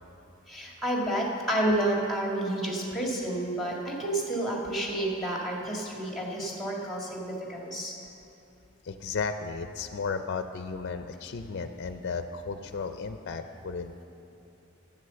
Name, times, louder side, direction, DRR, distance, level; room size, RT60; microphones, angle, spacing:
voice 1, 0.5-7.9, right 1 dB, ahead, -2 dB, 1.8 m, -30 dB
voice 2, 8.8-13.9, left 5 dB, 55° left, 8 dB, 0.4 m, -34 dB
9.6 x 8.1 x 6.8 m, 2.9 s
head